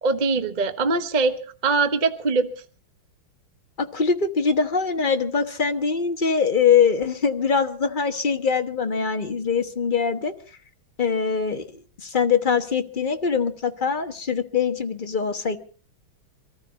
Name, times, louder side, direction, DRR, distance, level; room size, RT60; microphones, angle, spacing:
voice 1, 0.0-2.5, right 4 dB, 25° right, 9 dB, 1.0 m, -22 dB
voice 2, 3.8-10.3 11.0-15.6, left 6 dB, 30° left, 7 dB, 1.0 m, -23 dB
24.5 x 14.5 x 4.1 m, 0.39 s
omnidirectional pair, 2.4 m